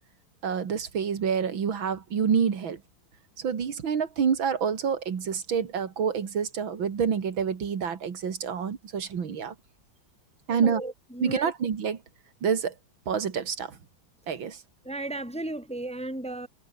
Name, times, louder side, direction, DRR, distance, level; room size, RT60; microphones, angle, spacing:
voice 1, 0.4-2.8 3.4-9.5 10.5-10.8 11.2-12.0 12.4-12.7 13.1-13.8 14.3-14.6, right 7 dB, 85° right, 2.8 m, -27 dB
voice 2, 10.5-11.5 14.8-16.5, right 2 dB, 5° left, 1.6 m, -35 dB
omnidirectional pair, 2.1 m